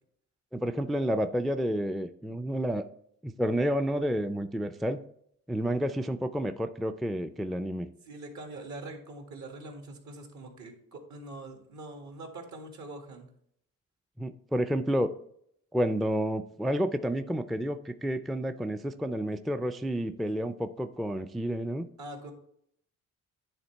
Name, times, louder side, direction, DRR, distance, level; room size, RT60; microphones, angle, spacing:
voice 1, 0.5-2.9 3.2-5.0 5.5-7.9 14.2-15.1 15.7-21.9, equal, ahead, 9 dB, 0.3 m, -30 dB
voice 2, 8.1-13.3 22.0-22.3, right 2 dB, 70° right, 3 dB, 1.9 m, -43 dB
9.9 x 3.6 x 4.4 m, 0.69 s
cardioid pair, 90°, 30 cm